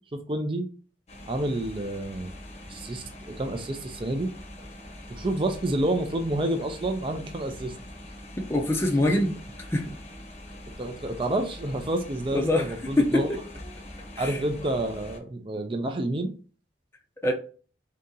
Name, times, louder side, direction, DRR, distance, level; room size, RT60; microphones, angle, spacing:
voice 1, 0.1-0.7 1.3-2.3 2.7-4.3 5.1-7.7 10.8-13.3 14.2-16.3, right 1 dB, 30° right, 0.5 m, -29 dB
sound 1, 1.1-15.2, left 1 dB, 35° left, 0.9 m, -43 dB
voice 2, 8.4-9.3 9.7-9.9 12.3-12.6 13.0-13.4 14.1-14.4 17.2-17.3, left 1 dB, 15° left, 0.6 m, -24 dB
3.7 x 2.8 x 3.7 m
head